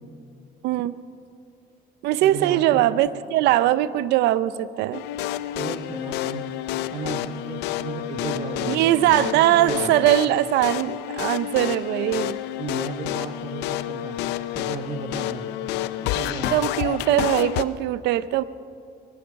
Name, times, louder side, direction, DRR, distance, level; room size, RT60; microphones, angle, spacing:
voice 1, 0.6-0.9 2.0-5.0 8.7-12.4 16.5-18.4, right 14 dB, 85° right, 16 dB, 0.6 m, -21 dB
voice 2, 2.2-3.0 5.5-6.5 6.9-8.9 9.3-10.1 12.6-14.2 14.5-15.5 16.0-16.7, right 5 dB, 35° right, 5 dB, 1.3 m, -34 dB
sound 1, 4.9-17.6, left 14 dB, 90° left, 0.5 m, -29 dB
23.0 x 10.0 x 6.3 m, 2.4 s
cardioid pair, 110°, 17 cm